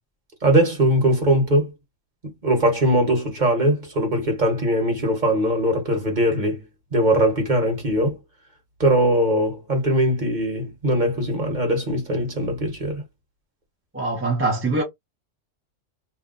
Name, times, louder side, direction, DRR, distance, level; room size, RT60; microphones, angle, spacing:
voice 1, 0.4-1.7 2.4-6.6 6.9-8.2 8.8-13.0, right 1 dB, 40° right, 1.3 m, -21 dB
voice 2, 13.9-14.8, right 2 dB, 10° right, 0.7 m, -23 dB
2.7 x 2.2 x 3.8 m
omnidirectional pair, 1.3 m